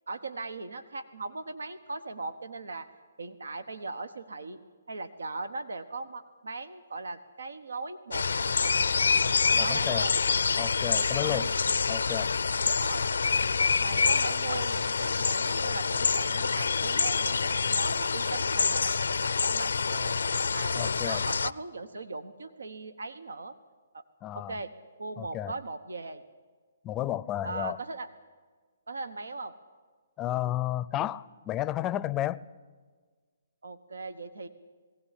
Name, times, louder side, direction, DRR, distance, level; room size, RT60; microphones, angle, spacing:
voice 1, 0.1-2.9 3.2-4.6 4.9-8.8 9.6-10.2 11.2-11.5 12.8-13.1 13.8-20.2 20.5-23.5 23.9-24.0 24.3-24.7 25.0-26.2 27.4-28.1 28.9-29.5 33.6-34.5, right 3 dB, 90° right, 1.2 m, -39 dB
sound 1, 8.1-21.5, left 5 dB, 85° left, 0.6 m, -27 dB
voice 2, 9.5-10.1 10.6-11.5 11.9-12.3 20.8-21.2 24.2-24.6 25.2-25.6 26.8-27.8 30.2-32.4, left 13 dB, 20° left, 0.6 m, -32 dB
20.0 x 17.0 x 10.0 m
hypercardioid pair, 150°, 0 cm